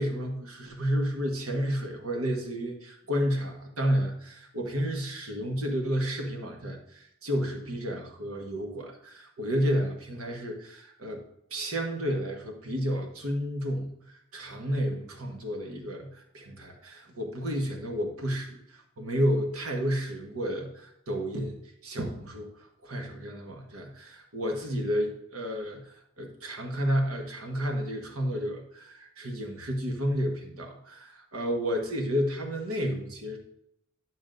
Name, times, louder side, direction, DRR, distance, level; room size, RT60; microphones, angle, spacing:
voice 1, 0.0-11.2 11.5-21.6 21.8-33.4, equal, 90° right, 2 dB, 1.3 m, -31 dB
11.0 x 6.1 x 2.6 m, 0.78 s
head